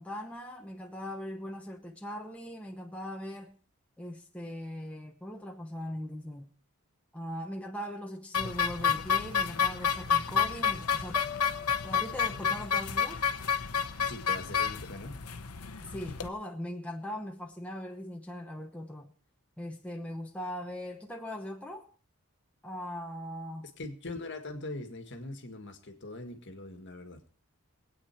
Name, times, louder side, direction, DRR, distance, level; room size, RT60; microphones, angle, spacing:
voice 1, 0.0-3.5 4.0-6.5 7.1-11.2 11.8-13.2 15.8-19.1 19.6-21.8 22.6-23.7, equal, 5° left, 0.9 m, -40 dB
sound 1, 8.3-16.3, left 7 dB, 80° left, 0.9 m, -30 dB
sound 2, 11.1-13.0, left 8 dB, 20° left, 1.4 m, -44 dB
voice 2, 14.1-15.2 23.8-27.2, left 2 dB, 50° left, 1.8 m, -41 dB
22.5 x 8.9 x 4.4 m
head